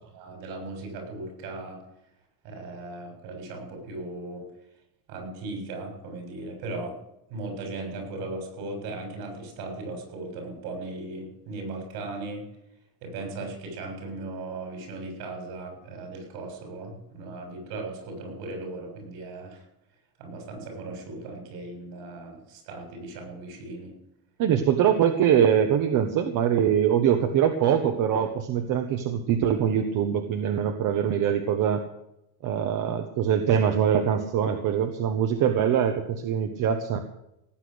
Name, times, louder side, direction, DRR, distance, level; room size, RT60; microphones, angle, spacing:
voice 1, 0.0-1.8 2.4-4.5 5.1-7.0 7.3-12.4 13.0-19.6 20.2-23.9, right 2 dB, 65° right, 4 dB, 7.2 m, -37 dB
voice 2, 24.4-31.8 32.4-37.0, right 8 dB, 50° right, 6 dB, 1.5 m, -23 dB
18.0 x 8.5 x 8.0 m, 0.85 s
cardioid pair, 150°, 41 cm